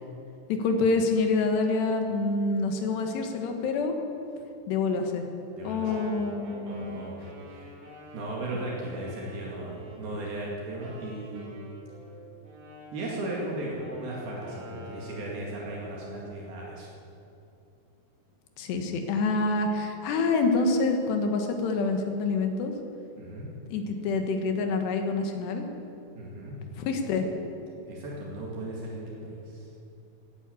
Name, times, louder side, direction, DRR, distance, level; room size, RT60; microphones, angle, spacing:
voice 1, 0.5-4.0 4.7-5.2 5.6-7.0 18.6-22.7 23.7-25.7 26.8-27.3, left 3 dB, 80° left, 5 dB, 3.5 m, -27 dB
Wind instrument woodwind instrument, 5.6-10.3 10.8-15.5, right 2 dB, 50° right, 4.3 m, -46 dB
voice 2, 5.6-6.0 6.7-7.2 7.5-7.7 8.1-11.5 12.9-16.9 23.2-23.5 26.2-26.6 27.9-29.7, right 1 dB, 65° right, -3 dB, 3.8 m, -36 dB
16.0 x 10.0 x 8.4 m, 2.7 s
omnidirectional pair, 4.9 m